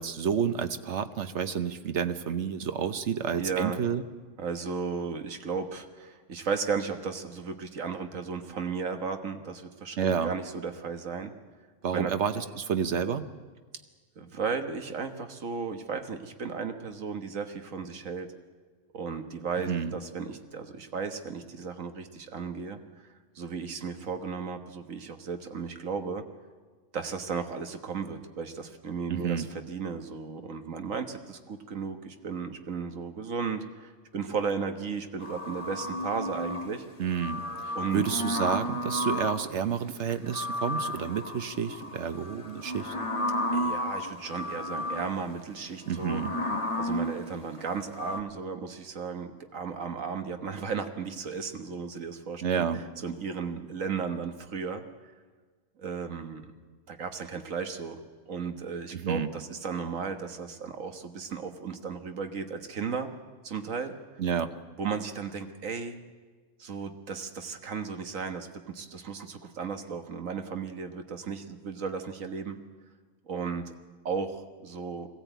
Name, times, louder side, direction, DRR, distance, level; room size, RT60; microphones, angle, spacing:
voice 1, 0.0-4.0 10.0-10.3 11.8-13.3 19.6-20.0 29.1-29.5 37.0-42.9 45.9-46.3 52.4-52.8 58.9-59.3 64.2-64.6, right 7 dB, 65° right, 10 dB, 1.2 m, -30 dB
voice 2, 3.4-3.8 4.4-11.3 11.9-12.1 14.2-18.3 18.9-22.8 23.4-26.2 26.9-36.9 37.8-38.0 43.5-46.2 46.8-52.6 53.0-54.8 55.8-56.5 56.9-58.0 58.3-63.1 63.4-64.0 64.8-66.0 66.6-68.5 68.7-72.6 73.3-73.6 74.1-75.1, right 5 dB, 90° right, 7 dB, 1.7 m, -35 dB
sound 1, 35.2-36.7 37.1-39.5 40.0-48.2, left 1 dB, 25° left, 1.5 m, -33 dB
21.0 x 16.0 x 9.2 m, 1.4 s
omnidirectional pair, 1.3 m